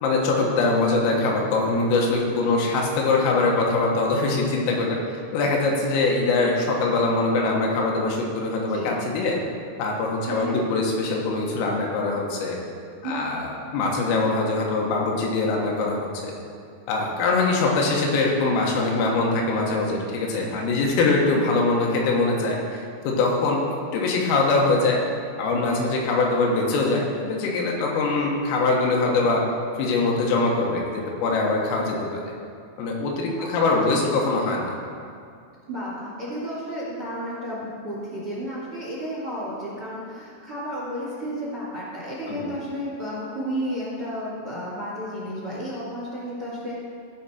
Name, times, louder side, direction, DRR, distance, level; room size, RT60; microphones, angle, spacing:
voice 1, 0.0-5.0 5.3-9.4 9.8-12.6 13.0-16.3 16.9-23.6 23.9-25.0 25.4-29.5 29.8-32.3 32.8-34.8 42.3-42.5, left 3 dB, 85° left, -1 dB, 3.9 m, -23 dB
voice 2, 8.6-8.9 10.3-10.6 13.0-13.2 33.4-33.7 35.7-46.8, equal, 45° right, -6 dB, 1.9 m, -32 dB
15.5 x 5.9 x 4.3 m, 2.3 s
omnidirectional pair, 5.7 m